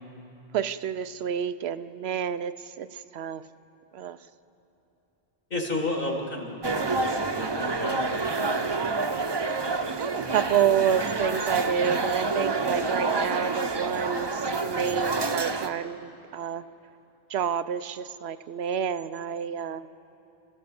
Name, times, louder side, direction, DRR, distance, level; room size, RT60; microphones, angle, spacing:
voice 1, 0.5-2.9 3.1-3.4 3.9-4.2 6.6-6.8 10.0-16.6 17.3-19.8, right 8 dB, 85° right, 12 dB, 0.9 m, -29 dB
voice 2, 5.5-8.9, left 2 dB, 60° left, 1 dB, 2.8 m, -33 dB
sound 1, 6.6-15.7, right 3 dB, 30° right, 0.7 m, -28 dB
29.5 x 14.5 x 6.9 m, 2.9 s
omnidirectional pair, 1.0 m